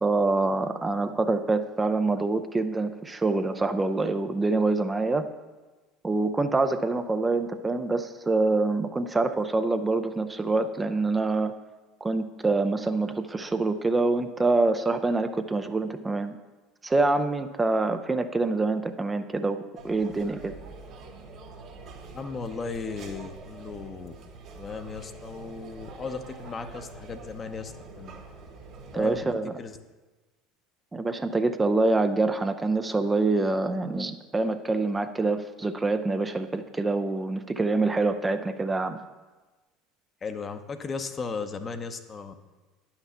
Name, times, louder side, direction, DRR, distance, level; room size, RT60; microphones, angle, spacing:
voice 1, 0.0-5.3 6.0-11.5 12.0-16.4 16.8-20.5 28.9-29.5 30.9-39.0, right 3 dB, 20° right, 8 dB, 0.5 m, -26 dB
sound 1, 19.8-29.2, right 3 dB, 55° right, 1.5 m, -45 dB
voice 2, 22.1-24.2 24.5-28.2 28.9-29.3 29.6-29.8 40.2-42.3, left 4 dB, 30° left, 9 dB, 0.8 m, -36 dB
9.9 x 5.9 x 5.6 m, 1.2 s
hypercardioid pair, 70°, 0 cm